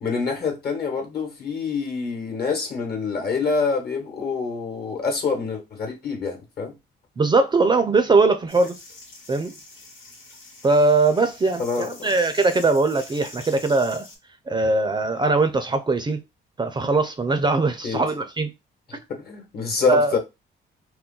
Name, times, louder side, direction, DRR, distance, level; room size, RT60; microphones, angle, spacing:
voice 1, 0.0-6.7 11.6-12.1 17.8-18.0 18.9-20.2, left 5 dB, 50° left, 1.1 m, -26 dB
voice 2, 7.2-8.8 9.3-9.5 10.6-14.1 14.5-16.2 16.6-18.5 19.9-20.1, right 3 dB, 25° right, 0.4 m, -20 dB
sound 1, 8.5-14.2, left 2 dB, 85° left, 1.3 m, -44 dB
2.3 x 2.2 x 3.6 m
cardioid pair, 90°, 20 cm